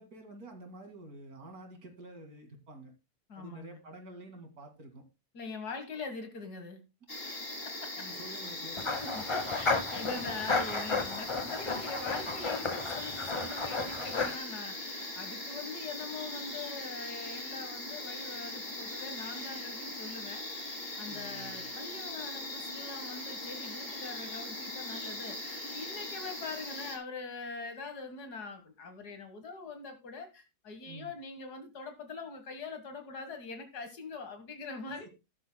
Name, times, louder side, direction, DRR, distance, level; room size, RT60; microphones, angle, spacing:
voice 1, 0.0-2.9 3.3-5.0 5.9-6.0 8.0-9.1 21.1-21.7 30.8-31.1 34.9-35.1, right 1 dB, 70° right, 4 dB, 2.8 m, -49 dB
voice 2, 3.3-3.8 5.3-6.8 7.7-7.9 9.0-35.1, left 4 dB, 85° left, 6 dB, 2.1 m, -43 dB
sound 1, 7.1-27.0, left 2 dB, 40° left, 3.1 m, -40 dB
sound 2, 8.8-14.4, left 3 dB, 20° left, 0.9 m, -33 dB
14.0 x 12.0 x 2.2 m, 0.27 s
omnidirectional pair, 1.6 m